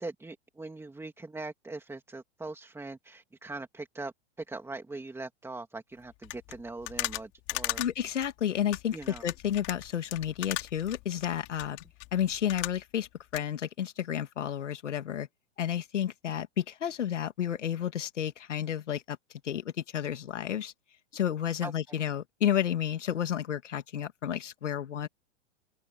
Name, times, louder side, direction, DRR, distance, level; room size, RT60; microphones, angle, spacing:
voice 1, 0.0-7.8 8.9-9.2 21.6-22.1, right 2 dB, 5° right, 3.0 m, -41 dB
sound 1, 6.2-13.1 13.3-13.4, left 24 dB, 45° left, 3.6 m, -37 dB
voice 2, 7.8-9.0 9.2-11.8 12.1-15.3 15.6-19.2 19.4-20.7 21.1-25.1, left 10 dB, 85° left, 2.6 m, -31 dB
open air
hypercardioid pair, 120°, 35 cm